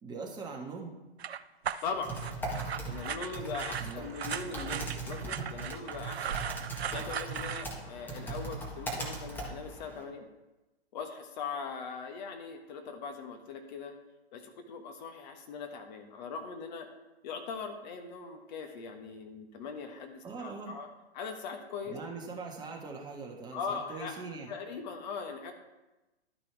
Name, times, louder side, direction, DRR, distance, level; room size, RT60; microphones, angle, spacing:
voice 1, 0.0-1.0 3.8-4.1 20.2-20.8 21.9-24.6, right 4 dB, 15° right, 0 dB, 1.5 m, -42 dB
sound 1, 1.2-7.6, right 8 dB, 75° right, 0.6 m, -38 dB
voice 2, 1.8-2.1 2.8-6.4 6.9-10.3 10.9-14.0 14.3-16.9 17.2-20.9 21.1-22.0 23.5-25.5, left 5 dB, 45° left, 5 dB, 1.3 m, -40 dB
Typing, 1.8-10.0, right 2 dB, 5° left, 1.6 m, -39 dB
11.5 x 6.0 x 4.7 m, 1.0 s
figure-of-eight pair, 120°, 32 cm